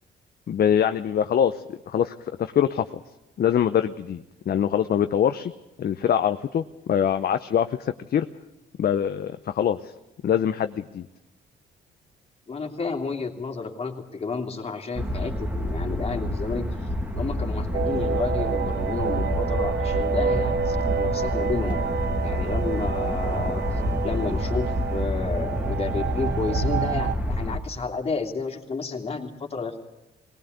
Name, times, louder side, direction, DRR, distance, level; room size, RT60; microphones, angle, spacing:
voice 1, 0.5-2.9 3.4-5.5 5.8-8.3 8.8-9.9 10.2-11.1, left 9 dB, 50° left, 9 dB, 0.7 m, -24 dB
voice 2, 12.5-16.7 17.1-21.8 22.2-23.6 24.0-29.8, left 4 dB, 30° left, 2 dB, 3.0 m, -31 dB
sound 1, 15.0-27.6, left 1 dB, 5° right, 2.3 m, -28 dB
sound 2, 17.7-27.2, right 7 dB, 60° right, 0.8 m, -29 dB
19.5 x 19.0 x 8.1 m, 1.0 s
cardioid pair, 90°, 20 cm